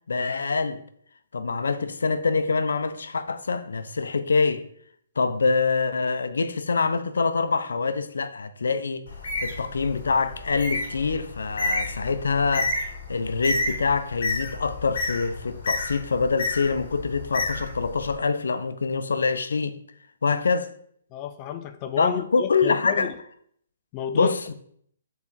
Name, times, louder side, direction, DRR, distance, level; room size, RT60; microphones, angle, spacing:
voice 1, 0.1-0.8 1.3-4.6 5.2-9.1 9.4-19.8 20.2-20.7 22.0-23.1 24.1-24.5, left 4 dB, 90° left, 0.7 m, -25 dB
Bird, 9.1-18.1, left 2 dB, 60° left, 2.1 m, -31 dB
voice 2, 21.1-23.1 23.9-24.3, left 8 dB, 25° left, 0.5 m, -31 dB
6.9 x 4.2 x 4.2 m
hypercardioid pair, 160°, 0 cm